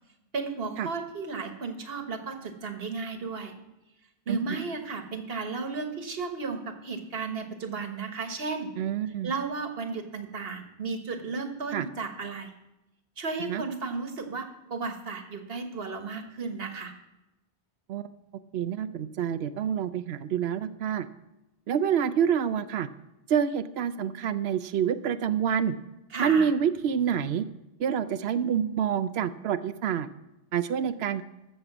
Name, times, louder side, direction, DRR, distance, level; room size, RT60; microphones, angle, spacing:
voice 1, 0.3-3.5 4.3-8.7 9.0-12.5 13.2-16.9 26.1-26.5, right 4 dB, 75° right, 6 dB, 1.5 m, -34 dB
voice 2, 8.8-9.3 11.7-11.9 13.5-13.6 17.9-18.1 18.5-21.1 21.7-22.9 23.3-25.8 26.2-27.5 27.8-30.1 30.5-31.2, right 8 dB, 90° right, 12 dB, 0.9 m, -27 dB
14.5 x 6.8 x 6.0 m, 0.96 s
omnidirectional pair, 1.0 m